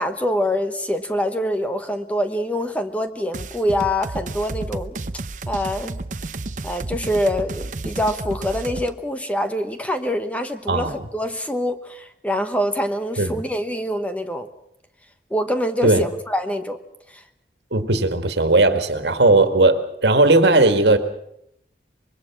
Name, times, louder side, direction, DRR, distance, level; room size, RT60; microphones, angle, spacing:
voice 1, 0.0-5.0 5.5-6.0 6.6-14.5 15.3-16.8 17.1-17.2, equal, 10° left, 7 dB, 1.1 m, -25 dB
sound 1, 3.3-8.9, right 2 dB, 45° right, 0.8 m, -31 dB
voice 2, 17.7-21.0, right 2 dB, 80° right, 8 dB, 1.9 m, -17 dB
25.0 x 22.5 x 6.0 m, 0.75 s
head